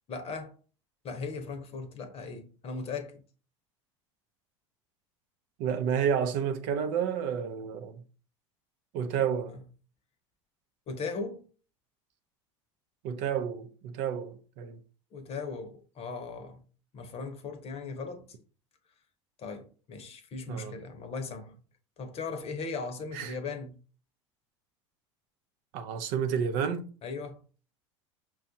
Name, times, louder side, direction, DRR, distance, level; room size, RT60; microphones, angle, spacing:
voice 1, 0.1-0.5 1.0-3.2 9.5-9.6 10.9-11.5 15.1-16.6 16.9-18.3 19.4-21.5 22.0-23.8 27.0-27.4, left 4 dB, 40° left, 0.8 m, -38 dB
voice 2, 5.6-8.0 8.9-9.6 13.0-14.8 20.5-20.8 23.1-23.4 25.7-26.9, right 7 dB, 60° right, 0.6 m, -30 dB
5.9 x 2.4 x 2.7 m
hypercardioid pair, 75°, 16 cm